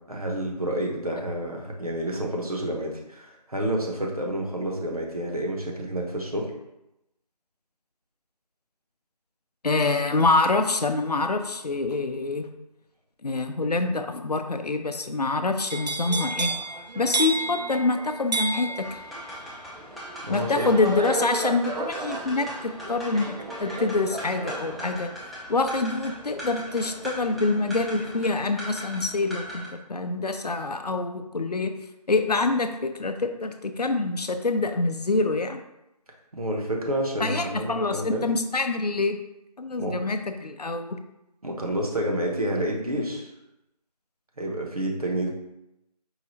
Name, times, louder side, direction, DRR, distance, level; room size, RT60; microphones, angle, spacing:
voice 1, 0.1-6.5 20.2-20.7 36.3-38.3 39.8-40.0 41.4-43.3 44.4-45.3, right 1 dB, 60° right, 0 dB, 0.9 m, -29 dB
voice 2, 9.6-12.5 13.2-16.5 17.0-19.0 20.3-25.1 25.5-31.7 32.1-35.6 37.2-39.2 39.6-41.0, left 3 dB, 75° left, 7 dB, 0.5 m, -26 dB
sound 1, 15.7-27.7 28.0-28.4, right 2 dB, 85° right, 0.4 m, -33 dB
sound 2, 18.8-29.7, equal, ahead, 0.3 m, -40 dB
4.8 x 2.1 x 4.0 m, 0.88 s
figure-of-eight pair, 170°, 21 cm